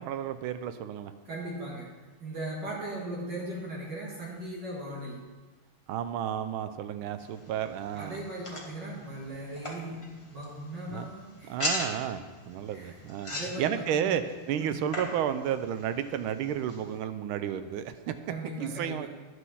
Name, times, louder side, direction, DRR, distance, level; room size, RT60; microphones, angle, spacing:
voice 1, 0.0-1.1 5.9-8.2 10.9-11.1 11.5-18.1 18.6-19.1, right 9 dB, 85° right, 10 dB, 1.4 m, -32 dB
voice 2, 1.3-1.9 2.2-5.2 7.9-11.5 12.7-13.0 13.3-14.2 14.6-14.8 18.3-19.1, right 1 dB, 60° right, -4 dB, 2.2 m, -38 dB
sound 1, 7.2-17.0, left 1 dB, 20° left, 1.2 m, -40 dB
11.0 x 6.3 x 5.6 m, 1.3 s
omnidirectional pair, 2.3 m